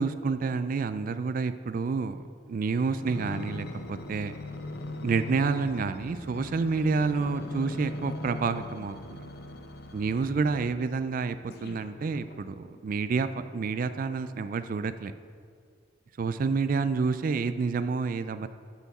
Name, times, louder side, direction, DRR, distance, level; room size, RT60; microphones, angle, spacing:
voice 1, 0.0-4.3 5.0-9.3 9.9-15.1 16.2-18.5, right 4 dB, 45° right, 11 dB, 0.3 m, -29 dB
sound 1, 2.9-10.9 11.5-12.8 13.4-13.5, left 2 dB, 55° left, 0.7 m, -40 dB
12.0 x 5.7 x 4.2 m, 2.1 s
head